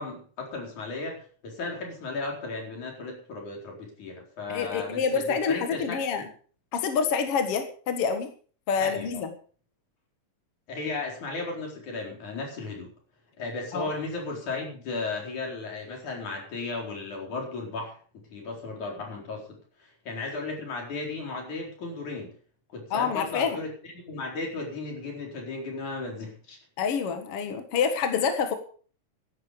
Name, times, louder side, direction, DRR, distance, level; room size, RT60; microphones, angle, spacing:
voice 1, 0.0-6.0 8.7-9.2 10.7-12.9 13.4-22.3 22.7-26.6, left 3 dB, 85° left, 0 dB, 5.8 m, -35 dB
voice 2, 4.5-6.3 6.7-8.3 8.7-9.3 13.7-13.9 22.9-23.6 26.8-28.5, left 6 dB, 55° left, 6 dB, 2.3 m, -27 dB
15.5 x 11.5 x 5.2 m, 0.43 s
omnidirectional pair, 3.3 m